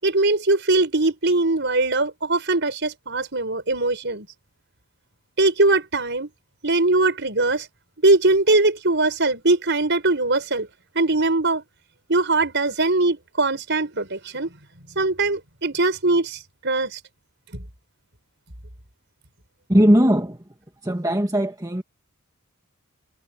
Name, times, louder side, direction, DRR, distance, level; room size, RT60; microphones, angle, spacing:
voice 1, 0.0-4.3 5.4-6.3 6.6-7.7 8.0-10.7 10.9-11.6 12.1-14.5 14.9-17.0 17.5-17.6, right 2 dB, 55° right, 6.3 m, -21 dB
voice 2, 19.7-20.4 20.8-21.8, equal, 15° right, 1.9 m, -19 dB
head